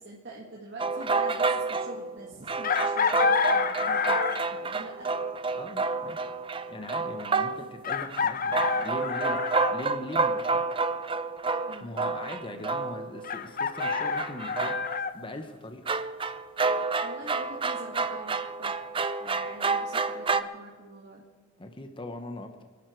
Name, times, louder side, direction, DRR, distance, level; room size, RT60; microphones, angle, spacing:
voice 1, 0.0-4.2 4.5-5.1 11.7-11.9 17.0-18.8 19.2-21.2, right 2 dB, 60° right, -3 dB, 2.1 m, -45 dB
sound 1, 0.8-7.8 8.1-8.2 8.5-13.3 13.8-15.0 15.9-20.4, right 4 dB, 25° right, 0.5 m, -29 dB
Chicken rooster, 2.6-4.6 6.3-6.4 7.8-9.8 13.2-15.1, left 5 dB, 45° left, 0.8 m, -28 dB
voice 2, 5.6-6.2 6.7-10.6 11.8-14.9 15.1-15.8 21.6-22.6, left 1 dB, 25° left, 6 dB, 1.0 m, -40 dB
28.0 x 11.0 x 4.6 m, 1.5 s
head